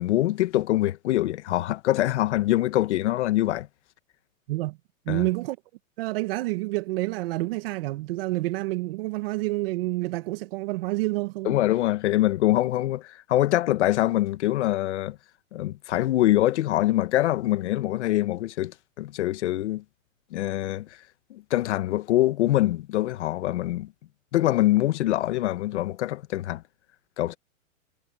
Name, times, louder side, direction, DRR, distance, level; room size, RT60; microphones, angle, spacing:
voice 1, 0.0-3.7 5.1-5.2 11.4-15.2 15.5-19.8 20.3-21.0 21.3-23.9 24.3-26.6 27.2-27.4, left 15 dB, 55° left, 1.5 m, -24 dB
voice 2, 5.0-5.6 6.0-11.6, right 21 dB, 45° right, 1.5 m, -28 dB
hypercardioid pair, 150°, 42 cm